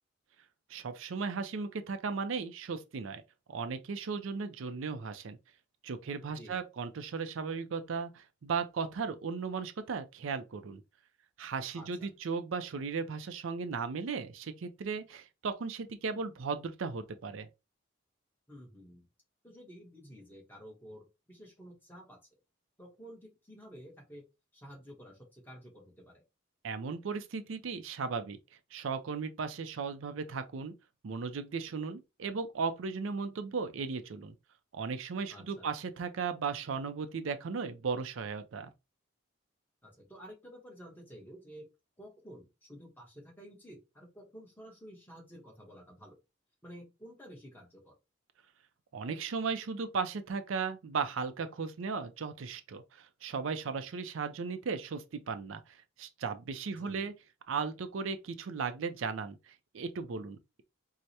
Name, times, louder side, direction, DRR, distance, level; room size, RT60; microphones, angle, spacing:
voice 1, 0.7-3.2 3.5-5.4 5.8-10.8 11.4-17.5 26.6-28.4 28.7-30.7 31.0-34.3 34.7-38.7 48.9-57.1 57.5-60.6, right 5 dB, 80° right, 0.4 m, -36 dB
voice 2, 6.3-6.6 11.7-12.1 18.5-19.1 19.4-22.2 22.8-24.2 24.5-26.2 35.3-35.7 39.8-41.7 42.0-46.2 46.6-47.9 56.7-57.1, equal, 10° left, 1.0 m, -51 dB
4.6 x 2.1 x 2.7 m
head